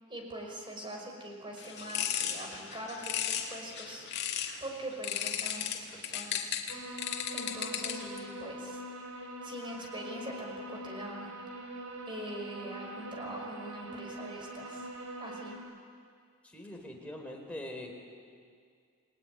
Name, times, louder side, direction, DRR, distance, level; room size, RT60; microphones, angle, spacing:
voice 1, 0.1-4.1 4.6-6.5 7.3-8.8 9.4-11.3 12.1-14.9 15.2-15.5, right 1 dB, 25° right, 1 dB, 5.5 m, -43 dB
sound 1, 1.6-4.6 5.0-8.2, left 9 dB, 50° left, 2.3 m, -35 dB
sound 2, 6.7-15.6, right 1 dB, 90° right, 4.4 m, -43 dB
voice 2, 16.4-17.9, left 1 dB, 5° left, 0 dB, 4.0 m, -42 dB
29.5 x 20.0 x 9.8 m, 2.2 s
head